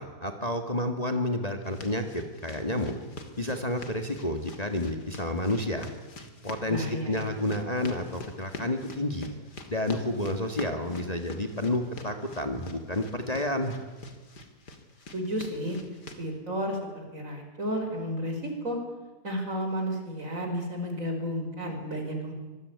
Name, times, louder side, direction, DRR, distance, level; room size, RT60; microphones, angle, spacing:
voice 1, 0.0-2.9 3.4-5.9 6.4-9.3 9.7-13.8, left 1 dB, 25° left, 6 dB, 2.0 m, -30 dB
sound 1, 1.6-16.2, left 3 dB, 90° left, 3.2 m, -45 dB
voice 2, 6.7-7.3 15.1-15.8 16.2-18.8 19.2-22.3, equal, 50° right, 4 dB, 5.7 m, -32 dB
25.5 x 21.5 x 9.7 m, 1.2 s
omnidirectional pair, 1.7 m